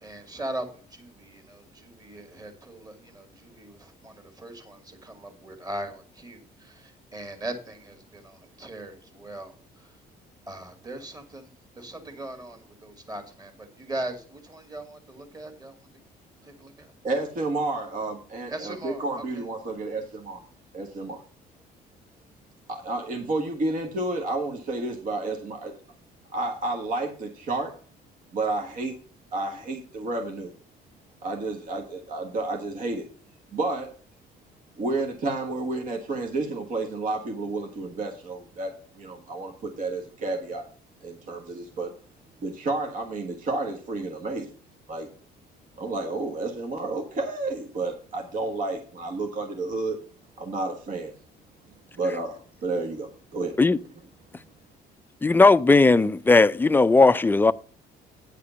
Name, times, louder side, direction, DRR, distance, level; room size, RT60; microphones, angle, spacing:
voice 1, 0.0-10.0 10.5-11.5 11.8-15.9 16.4-16.9 18.5-19.5, right 1 dB, 20° right, 2.3 m, -39 dB
voice 2, 17.0-20.4 20.7-21.2 22.7-25.7 26.3-27.7 28.3-29.0 29.3-30.5 31.2-33.0 33.5-33.9 34.8-40.6 41.0-41.9 42.4-44.5 44.9-45.1 45.8-50.0 50.4-51.1 52.0-53.5, right 2 dB, 50° right, 1.5 m, -30 dB
voice 3, 55.2-57.5, left 3 dB, 10° left, 0.4 m, -17 dB
9.5 x 4.9 x 6.7 m
cardioid pair, 110°, 17 cm